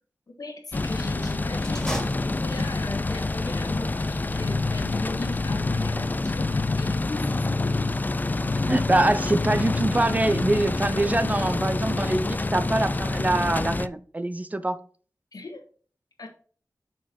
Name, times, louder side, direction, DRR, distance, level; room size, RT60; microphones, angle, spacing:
voice 1, 0.4-7.9 11.0-11.2 15.3-15.6 16.2-16.3, left 2 dB, 80° left, 1.5 m, -38 dB
sound 1, 0.7-13.9, left 2 dB, 30° left, 0.3 m, -27 dB
sound 2, 1.6-2.9, equal, 10° left, 2.3 m, -34 dB
sound 3, 4.2-10.7, left 4 dB, 65° left, 1.0 m, -32 dB
voice 2, 8.6-14.8, right 2 dB, 25° right, 0.6 m, -24 dB
6.2 x 4.7 x 4.4 m
wide cardioid pair, 85°, 6 cm